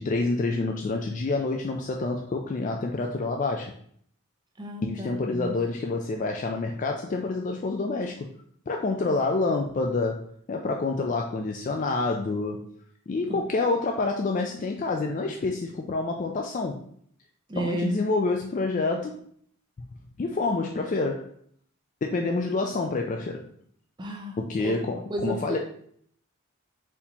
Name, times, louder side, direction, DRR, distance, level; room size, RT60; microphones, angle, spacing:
voice 1, 0.0-3.8 4.8-8.3 8.7-12.7 13.1-16.9 17.6-19.2 20.2-21.3 22.0-23.5 24.4-25.6, left 3 dB, 35° left, 2 dB, 0.3 m, -28 dB
voice 2, 4.6-5.5 13.3-13.4 17.5-17.9 24.0-24.4 24.6-24.8 25.1-25.6, right 1 dB, 20° right, 2 dB, 0.6 m, -32 dB
4.2 x 2.8 x 4.1 m, 0.64 s
head